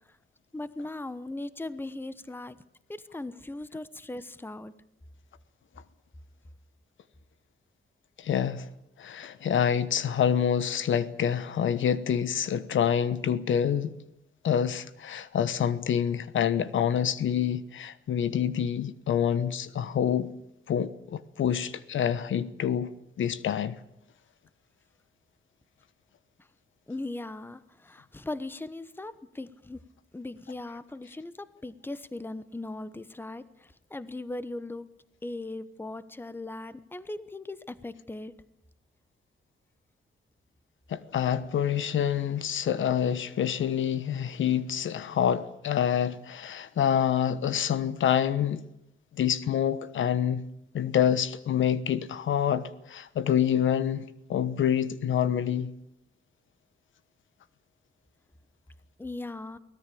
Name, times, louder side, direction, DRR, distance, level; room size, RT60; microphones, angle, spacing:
voice 1, 0.5-2.6 2.9-4.7 26.9-29.8 30.1-34.9 35.2-38.3 59.0-59.6, left 2 dB, 10° left, 1.0 m, -38 dB
voice 2, 8.2-8.7 9.0-13.9 14.4-20.3 20.7-22.9 23.2-23.7 40.9-48.6 49.2-50.4 50.7-54.0 54.3-55.7, left 9 dB, 75° left, 1.2 m, -27 dB
23.5 x 17.5 x 8.5 m
wide cardioid pair, 130°, 20 cm